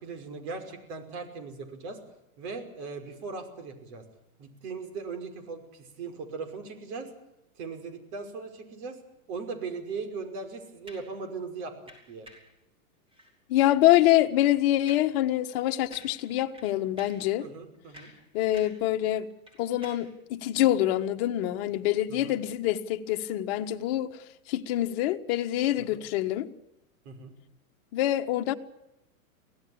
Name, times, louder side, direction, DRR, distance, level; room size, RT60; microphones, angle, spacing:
voice 1, 0.0-2.0 2.4-4.0 4.4-7.1 7.6-9.0 9.3-11.7 12.1-12.3 17.4-18.1 22.1-22.4 25.8-26.0 27.1-27.3, right 4 dB, 50° right, 5.6 m, -39 dB
sound 1, 10.9-11.2 11.9-12.5 13.1-13.3 13.7-14.2 14.9-15.2 15.5-15.6 15.9-16.3 16.5-17.3 17.7-18.9 19.2-20.2 20.8-20.9, equal, 10° right, 5.4 m, -52 dB
voice 2, 13.5-17.5 18.3-19.3 19.6-24.1 24.5-26.5 27.9-28.5, left 14 dB, 45° left, 1.6 m, -25 dB
24.5 x 17.5 x 8.7 m
supercardioid pair, 145°, 43 cm